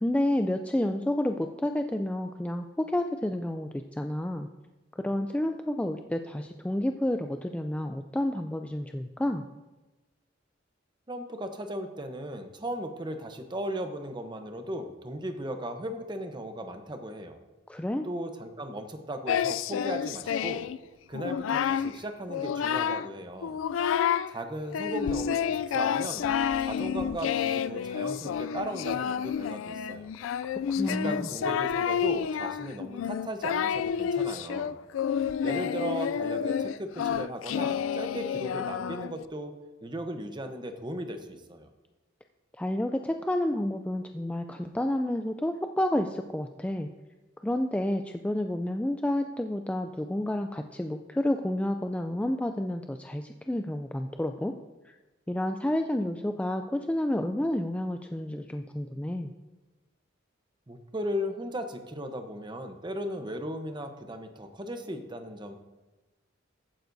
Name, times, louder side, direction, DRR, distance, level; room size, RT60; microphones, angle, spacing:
voice 1, 0.0-4.5 5.0-9.4 17.7-18.1 30.4-31.3 42.6-46.9 47.4-54.5 54.8-55.0 55.3-59.3, left 1 dB, 5° left, 5 dB, 0.3 m, -30 dB
voice 2, 11.1-17.4 18.0-20.7 21.1-23.6 24.3-26.3 26.6-30.1 30.8-34.8 35.4-39.5 39.8-41.7 60.7-65.6, equal, 25° right, 6 dB, 0.9 m, -37 dB
Singing, 19.3-20.8 21.1-21.9 22.3-23.1 23.4-24.3 24.7-39.2, left 8 dB, 85° left, 0.3 m, -29 dB
15.0 x 9.2 x 2.7 m, 1.1 s
head